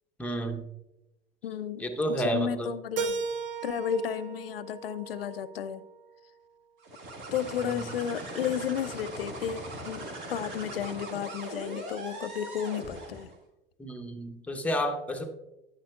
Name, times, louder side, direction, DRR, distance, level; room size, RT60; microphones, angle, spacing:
voice 1, 0.2-0.7 1.8-2.7 7.8-7.9 13.8-15.3, right 1 dB, 5° left, 3 dB, 0.9 m, -31 dB
voice 2, 1.4-1.8 2.1-3.2 3.6-5.8 7.3-13.3, left 8 dB, 75° left, 14 dB, 0.5 m, -33 dB
Keyboard (musical), 3.0-5.9, right 5 dB, 65° right, 0.8 m, -36 dB
sound 1, 6.8-13.4, right 1 dB, 45° right, 1.9 m, -40 dB
10.5 x 8.9 x 2.3 m, 0.95 s
figure-of-eight pair, 75°, 30 cm